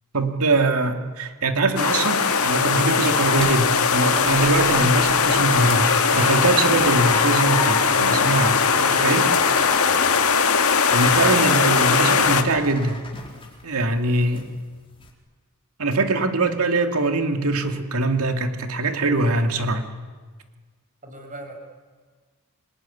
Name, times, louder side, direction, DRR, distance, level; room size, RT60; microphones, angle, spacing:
voice 1, 0.1-9.3 10.9-13.0 13.6-14.5 15.8-19.8, right 2 dB, 75° right, 6 dB, 2.5 m, -22 dB
sound 1, 1.8-12.4, left 5 dB, 70° left, 1.9 m, -20 dB
sound 2, 2.2-13.8 14.1-14.6 15.0-15.1, left 3 dB, 25° left, 4.3 m, -33 dB
voice 2, 11.8-12.3 21.0-21.5, right 2 dB, 35° right, 3 dB, 6.2 m, -37 dB
27.0 x 21.0 x 10.0 m, 1.5 s
head